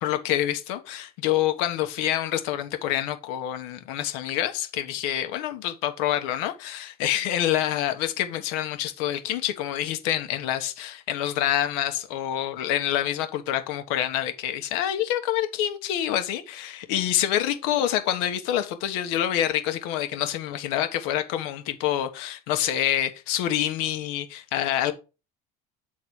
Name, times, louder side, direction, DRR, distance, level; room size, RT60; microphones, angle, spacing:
voice 1, 0.0-24.9, left 11 dB, 75° left, 1.2 m, -27 dB
7.4 x 3.9 x 4.7 m
supercardioid pair, 90°, 19 cm